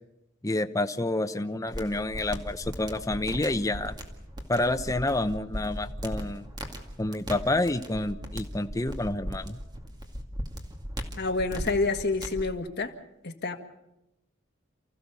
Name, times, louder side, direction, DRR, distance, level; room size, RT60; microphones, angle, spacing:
voice 1, 0.4-3.9 4.5-6.5 7.0-9.6, left 2 dB, 15° left, 8 dB, 0.9 m, -28 dB
sound 1, 1.7-12.5, equal, 20° right, 2.2 m, -38 dB
voice 2, 11.2-12.9 13.2-13.5, left 3 dB, 60° left, 4 dB, 1.9 m, -28 dB
29.0 x 15.0 x 7.0 m, 0.91 s
head